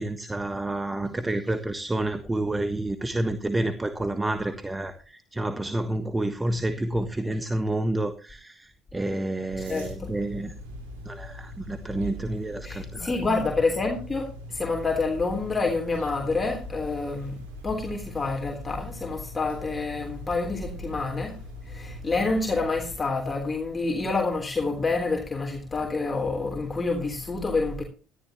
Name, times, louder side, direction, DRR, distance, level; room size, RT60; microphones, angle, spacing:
voice 1, 0.0-10.5 11.0-13.1, right 1 dB, 15° right, 1.4 m, -29 dB
sound 1, 9.5-23.0, left 1 dB, 85° right, 4.5 m, -41 dB
voice 2, 9.7-10.1 12.6-17.4 17.6-21.4 21.7-27.8, left 3 dB, 25° left, 3.6 m, -28 dB
17.5 x 13.0 x 3.0 m
hypercardioid pair, 65°, 0 cm